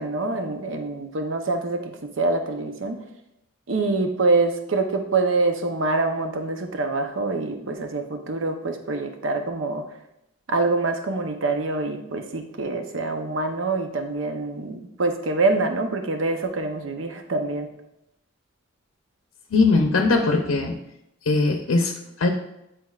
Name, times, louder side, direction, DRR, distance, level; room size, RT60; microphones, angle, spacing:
voice 1, 0.0-3.0 3.7-9.8 10.5-17.7, right 3 dB, 65° right, 5 dB, 0.7 m, -25 dB
voice 2, 19.5-20.7 21.3-22.3, left 3 dB, 85° left, 3 dB, 0.6 m, -20 dB
9.5 x 4.4 x 2.4 m, 0.86 s
head